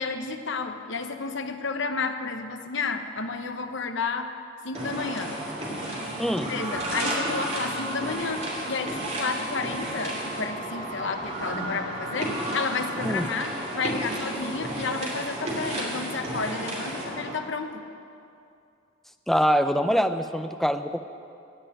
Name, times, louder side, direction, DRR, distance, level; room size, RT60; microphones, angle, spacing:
voice 1, 0.0-4.3 4.6-5.4 6.4-17.8, left 4 dB, 60° left, 7 dB, 0.9 m, -31 dB
sound 1, 4.7-17.3, right 1 dB, 30° right, 2.8 m, -32 dB
voice 2, 19.3-21.0, equal, ahead, 9 dB, 0.4 m, -24 dB
17.0 x 5.6 x 9.9 m, 2.5 s
head